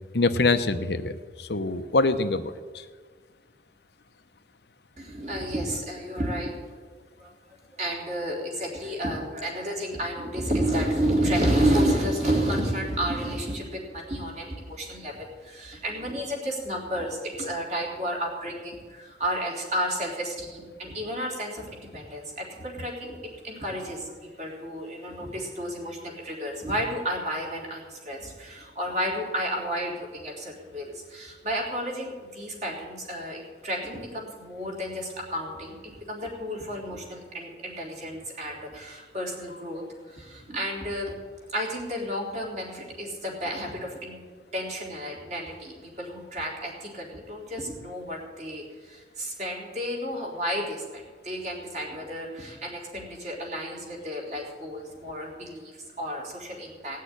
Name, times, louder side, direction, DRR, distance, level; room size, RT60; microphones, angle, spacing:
voice 1, 0.1-2.5, left 3 dB, 65° left, 10 dB, 0.9 m, -24 dB
voice 2, 5.0-6.6 7.2-7.3 7.8-41.2 41.5-44.2 44.5-57.0, equal, 40° right, -2 dB, 3.5 m, -31 dB
18.0 x 6.6 x 9.9 m, 1.5 s
head